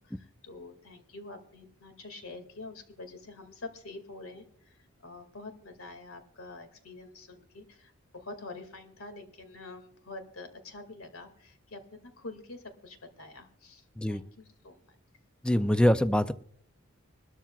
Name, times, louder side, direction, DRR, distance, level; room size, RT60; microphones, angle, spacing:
voice 1, 0.0-4.8 5.0-15.0, left 2 dB, 85° left, 7 dB, 2.2 m, -46 dB
voice 2, 15.4-16.3, equal, 5° left, 12 dB, 0.4 m, -24 dB
21.5 x 13.0 x 2.4 m, 0.64 s
head